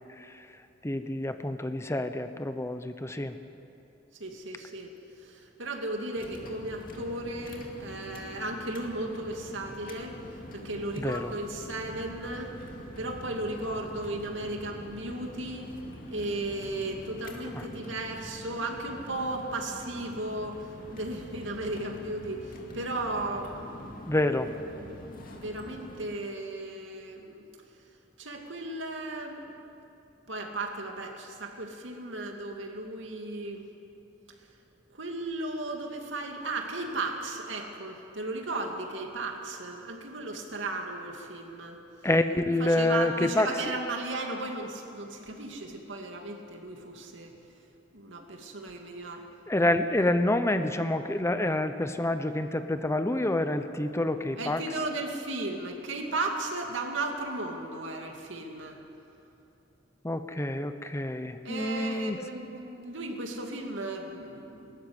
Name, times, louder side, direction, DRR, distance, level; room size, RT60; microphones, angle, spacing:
voice 1, 0.8-3.4 11.0-11.3 17.5-17.6 24.1-24.5 42.0-43.5 49.5-54.6 60.0-62.2, left 1 dB, 15° left, 9 dB, 0.7 m, -27 dB
voice 2, 4.2-4.9 5.2-10.2 10.5-12.5 13.0-15.7 16.1-24.0 24.7-27.4 28.2-29.5 30.3-33.7 34.9-41.8 42.6-47.3 47.9-49.2 54.4-58.8 61.4-64.8, right 2 dB, 80° right, 2 dB, 2.5 m, -35 dB
sound 1, 6.2-26.1, left 1 dB, 50° left, 2.3 m, -45 dB
19.5 x 14.0 x 9.6 m, 2.8 s
head